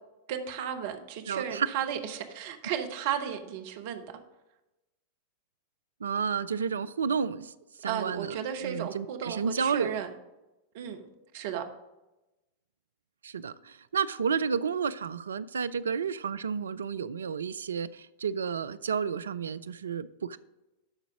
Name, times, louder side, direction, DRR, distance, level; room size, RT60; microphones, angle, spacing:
voice 1, 0.3-4.0 7.9-10.1 10.7-11.0 11.3-11.6, right 9 dB, 50° right, 1.0 m, -34 dB
voice 2, 1.3-1.7 6.0-7.5 7.8-10.0 13.2-20.4, right 6 dB, 70° right, 0.3 m, -31 dB
12.0 x 4.0 x 6.0 m
figure-of-eight pair, 90°, 0 cm